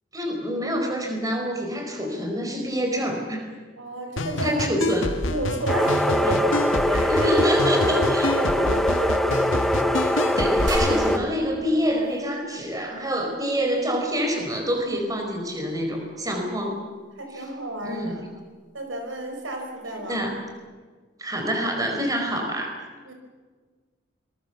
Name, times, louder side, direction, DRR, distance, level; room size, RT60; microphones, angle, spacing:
voice 1, 0.1-3.5 4.4-5.1 6.2-6.3 7.1-8.3 10.4-16.8 17.9-18.2 20.1-20.3 21.2-22.8, equal, 20° right, 3 dB, 5.0 m, -26 dB
voice 2, 3.8-4.6 5.3-7.4 7.9-10.4 16.3-16.7 17.2-18.2 18.7-20.3 23.0-23.1, right 1 dB, 85° right, 4 dB, 5.5 m, -32 dB
sound 1, 4.2-11.0, left 1 dB, 90° left, 1.7 m, -28 dB
sound 2, 5.7-11.2, equal, ahead, 0.9 m, -23 dB
sound 3, 10.7-13.0, right 1 dB, 70° right, 2.7 m, -34 dB
26.5 x 21.5 x 7.0 m, 1.5 s
head